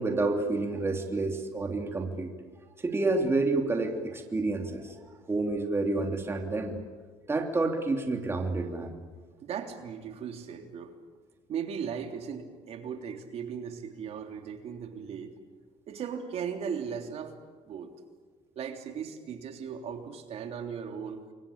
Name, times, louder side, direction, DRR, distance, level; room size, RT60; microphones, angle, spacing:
voice 1, 0.0-2.3 2.8-6.8 7.3-9.0, right 3 dB, 20° right, 3 dB, 3.1 m, -29 dB
voice 2, 9.4-10.9 11.5-15.4 15.9-17.3 17.7-17.9 18.5-21.2, right 7 dB, 50° right, 4 dB, 3.3 m, -37 dB
29.0 x 23.0 x 8.8 m, 1.5 s
cardioid pair, 115°, 13 cm